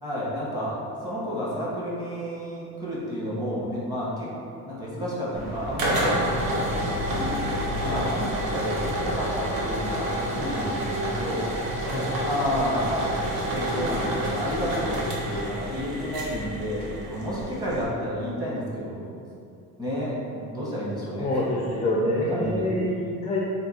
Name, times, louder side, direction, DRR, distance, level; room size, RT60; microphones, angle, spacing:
voice 1, 0.0-4.3 4.7-6.2 6.5-7.4 7.9-11.5 12.2-13.2 13.5-19.1 19.8-21.4 22.3-22.6, equal, 10° right, -7 dB, 1.1 m, -31 dB
sound 1, 5.3-17.8, equal, 85° right, 0.9 m, -29 dB
voice 2, 21.1-23.4, left 1 dB, 20° left, -4 dB, 0.4 m, -27 dB
3.4 x 2.7 x 4.2 m, 2.5 s
cardioid pair, 135°, 35 cm